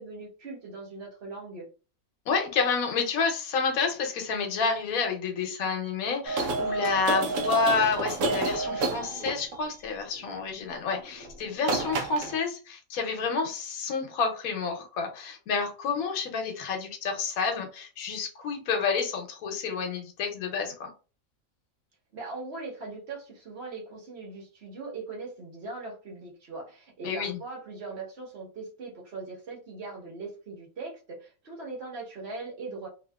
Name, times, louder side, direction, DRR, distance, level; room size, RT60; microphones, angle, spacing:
voice 1, 0.0-1.7 22.1-32.9, right 3 dB, 50° right, -2 dB, 1.3 m, -40 dB
voice 2, 2.3-20.9 27.0-27.4, left 5 dB, 85° left, 3 dB, 1.2 m, -29 dB
sound 1, 6.2-9.7 11.2-11.4 11.6-12.4, right 3 dB, 70° right, 1.0 m, -29 dB
2.8 x 2.8 x 2.3 m, 0.35 s
omnidirectional pair, 1.4 m